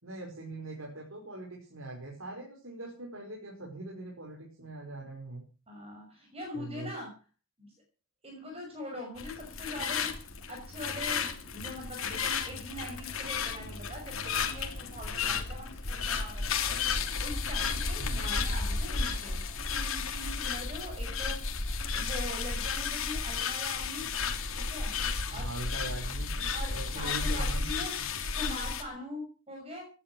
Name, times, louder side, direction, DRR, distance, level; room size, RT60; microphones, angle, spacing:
voice 1, 0.0-5.4 6.5-6.9 18.0-18.3 25.3-27.8, right 2 dB, 70° right, 0 dB, 5.2 m, -42 dB
voice 2, 5.7-7.1 7.6-7.7 8.2-10.1 10.5-16.8 17.2-19.4 19.7-21.4 21.9-24.0 24.5-24.9 25.3-25.5 26.5-27.9 28.3-29.9, left 1 dB, 30° right, 1 dB, 5.9 m, -42 dB
sound 1, 9.2-28.8, left 5 dB, 70° left, 2.9 m, -33 dB
sound 2, 12.4-22.0, left 1 dB, 30° left, 3.5 m, -53 dB
17.0 x 11.5 x 6.1 m, 0.35 s
head